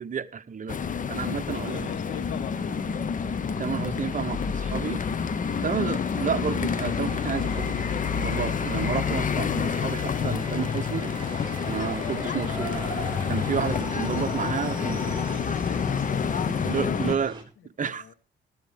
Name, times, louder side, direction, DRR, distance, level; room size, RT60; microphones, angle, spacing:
voice 1, 0.0-1.9 3.6-5.0 5.6-7.8 8.2-12.9 13.3-15.2 16.5-17.4 17.8-18.1, right 7 dB, 40° right, 1.1 m, -31 dB
sound 1, 0.7-17.2, left 6 dB, 40° left, 1.0 m, -28 dB
sound 2, 1.4-17.4, right 2 dB, 25° right, 3.6 m, -42 dB
voice 2, 1.7-2.9 14.0-17.1 17.8-18.1, left 10 dB, 80° left, 1.4 m, -43 dB
sound 3, 9.0-15.3, equal, 15° left, 6.4 m, -41 dB
14.0 x 9.5 x 5.2 m
cardioid pair, 90°, 20 cm